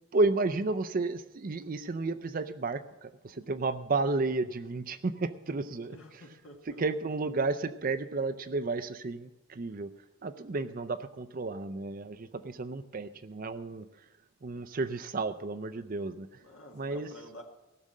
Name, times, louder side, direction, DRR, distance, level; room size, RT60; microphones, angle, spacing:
voice 1, 0.1-5.9 6.7-9.9 10.2-13.9 14.4-16.4 16.8-17.1, right 3 dB, 40° right, 11 dB, 0.5 m, -32 dB
voice 2, 5.7-6.8 16.4-17.4, left 1 dB, 65° left, 1 dB, 1.8 m, -50 dB
16.5 x 6.5 x 7.4 m, 0.99 s
head